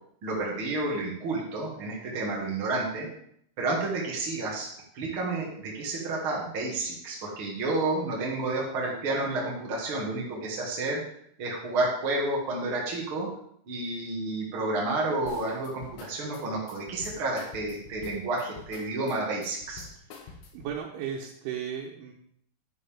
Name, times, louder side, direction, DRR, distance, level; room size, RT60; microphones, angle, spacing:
voice 1, 0.2-3.1 3.6-4.7 4.9-11.0 11.4-13.3 13.7-19.9, right 2 dB, 55° right, -3 dB, 1.5 m, -30 dB
sound 1, 15.3-20.8, left 5 dB, 65° left, 2.7 m, -47 dB
voice 2, 20.1-22.1, right 8 dB, 90° right, -2 dB, 3.5 m, -36 dB
9.6 x 9.5 x 3.6 m, 0.68 s
omnidirectional pair, 5.3 m